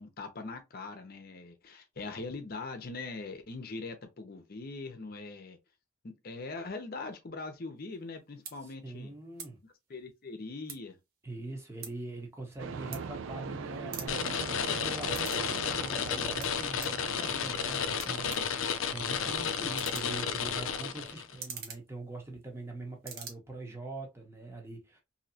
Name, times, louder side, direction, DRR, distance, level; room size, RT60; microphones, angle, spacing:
voice 1, 0.0-5.6 6.0-9.1 9.9-11.0, left 3 dB, 50° left, 0.7 m, -41 dB
sound 1, 7.9-8.1 8.4-8.6 9.3-9.5 9.8-11.0 11.4-13.5 13.8-15.5 15.8-17.0 17.6-17.7 18.0-22.7 22.9-23.3, right 6 dB, 50° right, 0.9 m, -46 dB
voice 2, 8.6-9.6 11.2-25.0, right 2 dB, 15° right, 0.8 m, -43 dB
sound 2, 12.6-18.4, right 5 dB, 70° right, 0.4 m, -42 dB
sound 3, 14.1-21.3, left 7 dB, 85° left, 0.4 m, -32 dB
3.1 x 2.8 x 2.7 m
head